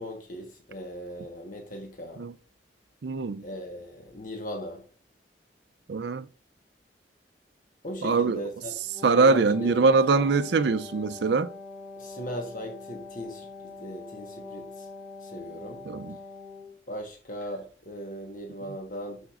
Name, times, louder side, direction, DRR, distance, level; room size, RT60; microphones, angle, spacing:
voice 1, 0.0-2.2 3.4-4.8 7.8-8.8 9.1-9.9 12.0-14.9 15.2-15.8 16.9-19.2, equal, 50° left, 1.3 m, -38 dB
voice 2, 3.0-3.4 5.9-6.3 8.0-8.4 9.0-11.5 15.9-16.1, right 4 dB, 75° right, 0.5 m, -23 dB
Wind instrument woodwind instrument, 8.8-16.8, left 3 dB, 5° right, 1.5 m, -44 dB
12.0 x 5.0 x 2.5 m
head